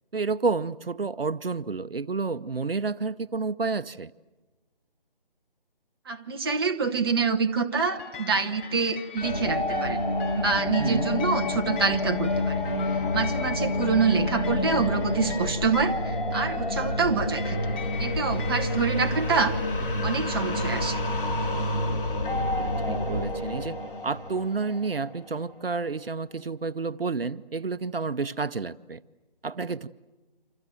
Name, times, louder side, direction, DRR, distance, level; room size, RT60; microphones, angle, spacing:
voice 1, 0.1-4.1 10.8-11.1 22.5-23.8 24.0-29.0 29.4-29.9, right 4 dB, 75° right, 14 dB, 0.8 m, -30 dB
voice 2, 6.1-10.0 10.3-12.6 13.1-17.6 18.0-19.6 20.0-21.0, right 5 dB, 25° right, 4 dB, 1.1 m, -26 dB
sound 1, 7.7-19.4, left 6 dB, 10° left, 1.1 m, -42 dB
sound 2, 9.2-25.5, left 1 dB, 65° left, 2.7 m, -28 dB
28.5 x 26.5 x 7.6 m, 1.2 s
figure-of-eight pair, 155°, 29 cm